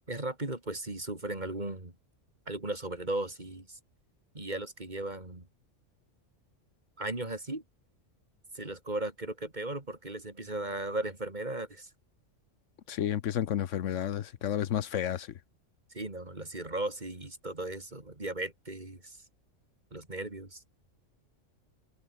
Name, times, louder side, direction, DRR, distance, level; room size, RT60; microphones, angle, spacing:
voice 1, 0.1-1.9 2.5-3.8 4.3-5.5 7.0-7.6 8.5-11.9 15.9-19.2 19.9-20.6, right 2 dB, 35° right, 3.4 m, -36 dB
voice 2, 12.9-15.3, left 10 dB, 75° left, 1.1 m, -31 dB
omnidirectional pair, 1.3 m